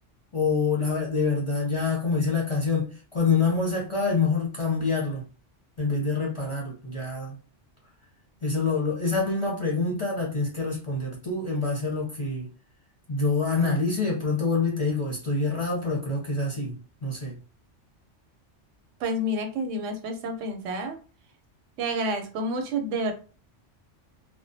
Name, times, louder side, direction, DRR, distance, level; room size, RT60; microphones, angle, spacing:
voice 1, 0.3-5.2 5.8-7.4 8.4-12.5 13.1-16.8 17.0-17.4, left 4 dB, 35° left, 0.6 m, -26 dB
voice 2, 19.0-21.0 21.8-23.1, right 1 dB, 85° right, 0.9 m, -29 dB
2.3 x 2.1 x 2.6 m
omnidirectional pair, 1.2 m